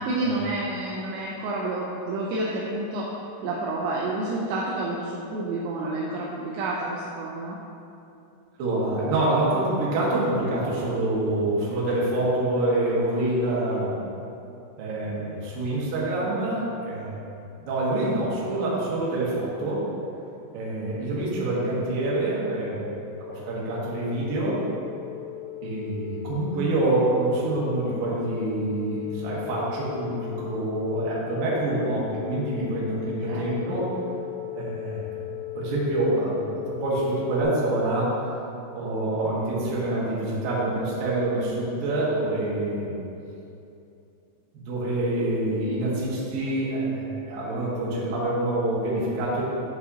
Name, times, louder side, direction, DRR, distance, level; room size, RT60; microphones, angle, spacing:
voice 1, 0.0-3.1 3.4-7.6 10.1-10.5 33.3-33.8, right 2 dB, 80° right, -4 dB, 2.7 m, -29 dB
voice 2, 8.6-14.0 14.8-17.2 17.6-19.9 20.5-22.9 23.2-24.6 25.6-33.9 34.5-35.1 35.5-38.2 38.7-42.9 44.5-49.4, right 2 dB, 60° right, -7 dB, 2.6 m, -26 dB
sound 1, 20.4-37.4, left 17 dB, 65° left, 2.5 m, -38 dB
11.0 x 5.3 x 2.8 m, 2.7 s
omnidirectional pair, 5.5 m